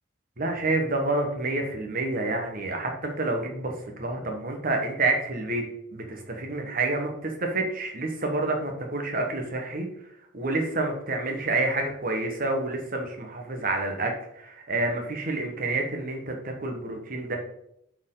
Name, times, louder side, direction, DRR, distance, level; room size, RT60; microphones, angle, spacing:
voice 1, 0.4-5.6 5.9-9.9 10.3-17.4, right 2 dB, 45° right, 3 dB, 1.3 m, -28 dB
10.5 x 4.6 x 3.8 m, 0.77 s
head